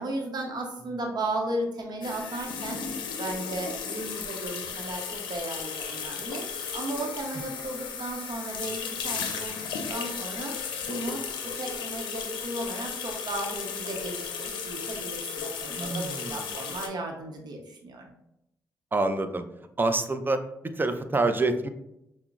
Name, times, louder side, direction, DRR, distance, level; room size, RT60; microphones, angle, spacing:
voice 1, 0.0-9.6 9.9-18.1, right 1 dB, 60° right, 2 dB, 0.8 m, -35 dB
sound 1, 2.0-16.9, left 6 dB, 85° left, 0.5 m, -35 dB
voice 2, 15.8-16.5 18.9-19.4 19.8-21.7, right 2 dB, 25° right, 9 dB, 0.5 m, -27 dB
5.6 x 2.0 x 2.4 m, 0.82 s
supercardioid pair, 55°, 8 cm